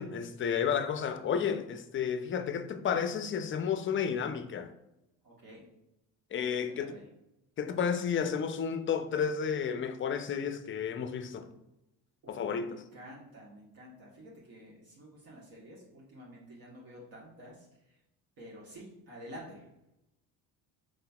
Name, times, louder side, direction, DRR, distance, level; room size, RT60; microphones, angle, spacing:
voice 1, 0.0-4.7 6.3-6.9 7.6-11.5 12.3-12.8, left 7 dB, 30° left, 0.4 m, -32 dB
voice 2, 5.2-5.6 6.7-7.1 12.2-18.0 18.4-19.7, equal, 60° right, 1.2 m, -50 dB
4.9 x 3.9 x 2.3 m
cardioid pair, 90°, 39 cm